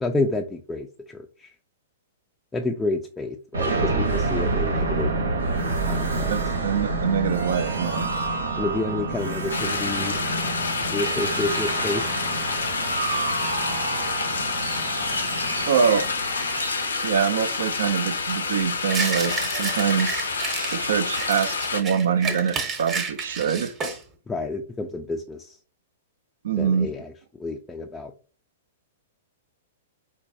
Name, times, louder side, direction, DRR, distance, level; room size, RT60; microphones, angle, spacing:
voice 1, 0.0-1.5 2.5-5.1 5.8-6.3 8.6-10.2 10.9-12.0 24.3-25.6 26.6-27.1 27.4-28.1, left 2 dB, 10° left, 2 dB, 0.3 m, -29 dB
sound 1, 3.5-18.2, right 3 dB, 85° right, 0.9 m, -28 dB
voice 2, 6.3-8.1 15.7-16.0 17.0-20.3 20.7-23.7 26.4-26.9, right 7 dB, 65° right, 11 dB, 0.3 m, -24 dB
sound 2, 9.5-21.8, left 4 dB, 80° left, 0.5 m, -28 dB
sound 3, 18.9-20.8 21.2-24.0, right 4 dB, 25° right, 0.8 m, -31 dB
4.5 x 2.2 x 2.6 m, 0.37 s
hypercardioid pair, 110°, 0 cm